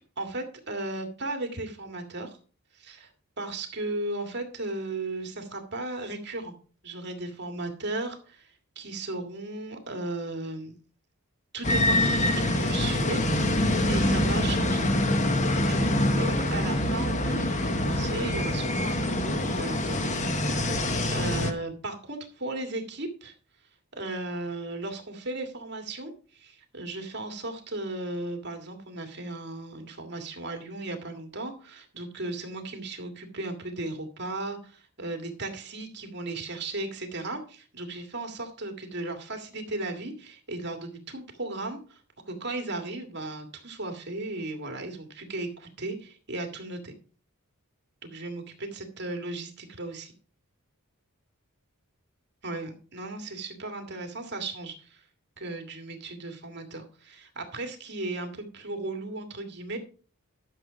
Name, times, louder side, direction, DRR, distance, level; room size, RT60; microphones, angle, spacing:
voice 1, 0.2-2.4 2.7-3.1 3.4-6.5 6.8-10.8 11.5-14.9 15.3-23.3 23.9-42.0 42.3-46.9 48.0-50.1 52.4-55.0 55.4-59.8, right 2 dB, 50° right, 5 dB, 2.1 m, -36 dB
sound 1, 11.6-21.5, left 1 dB, 35° left, 1.1 m, -25 dB
12.0 x 6.8 x 5.1 m, 0.40 s
head